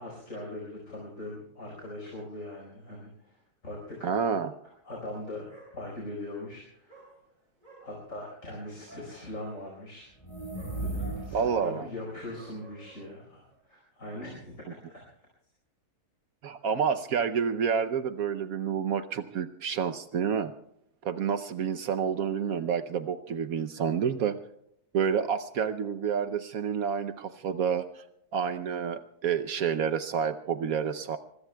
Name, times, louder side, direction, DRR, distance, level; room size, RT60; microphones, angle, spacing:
voice 1, 0.0-3.4 3.6-4.1 4.8-5.5 5.7-7.0 7.8-10.1 10.7-15.3, left 1 dB, 55° left, -2 dB, 5.0 m, -41 dB
voice 2, 4.0-4.5 11.3-11.9 16.4-20.5 21.0-24.4 24.9-28.0 28.3-31.2, right 7 dB, 70° right, 10 dB, 1.1 m, -29 dB
Dog, 5.2-5.3 5.5-6.2 6.9-13.6, right 1 dB, 30° right, 6.9 m, -55 dB
sound 1, 10.1-11.7, right 2 dB, 20° left, 5.3 m, -35 dB
24.5 x 21.5 x 2.3 m, 0.75 s
omnidirectional pair, 1.6 m